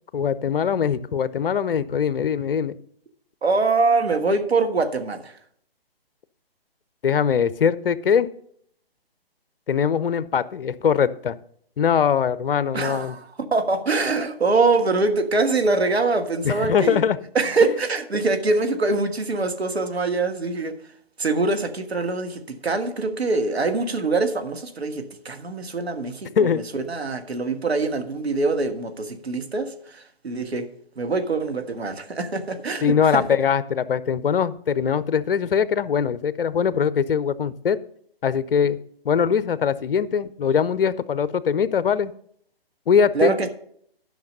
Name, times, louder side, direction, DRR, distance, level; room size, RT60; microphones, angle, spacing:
voice 1, 0.1-2.7 7.0-8.3 9.7-11.4 11.8-13.1 16.4-17.2 26.4-26.6 32.8-37.8 38.2-38.8 39.0-42.1 42.9-43.4, left 7 dB, 65° left, 16 dB, 0.7 m, -22 dB
voice 2, 3.4-5.3 12.7-17.0 17.3-20.7 21.2-30.7 31.0-33.2 43.1-43.5, right 3 dB, 85° right, 7 dB, 1.6 m, -24 dB
11.5 x 6.1 x 5.3 m, 0.66 s
figure-of-eight pair, 145°, 31 cm